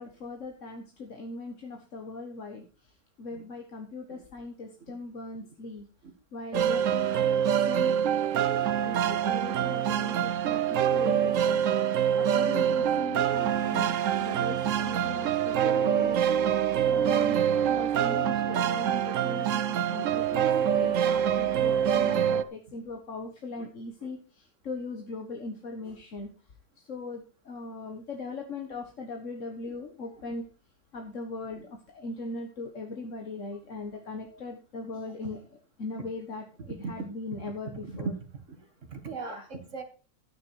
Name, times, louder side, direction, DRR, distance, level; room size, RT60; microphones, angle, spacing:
voice 1, 0.0-2.9 3.2-5.8 6.3-7.3 7.7-8.0 8.8-16.2 16.8-17.4 17.7-26.3 26.8-30.5 30.9-35.5 35.8-38.1 39.3-39.5, left 3 dB, 45° left, 3 dB, 1.8 m, -39 dB
sound 1, 6.5-22.4, right 9 dB, 60° right, 0.9 m, -25 dB
voice 2, 38.9-39.8, right 4 dB, 45° right, 6 dB, 2.1 m, -37 dB
12.5 x 9.5 x 4.7 m, 0.36 s
omnidirectional pair, 1.9 m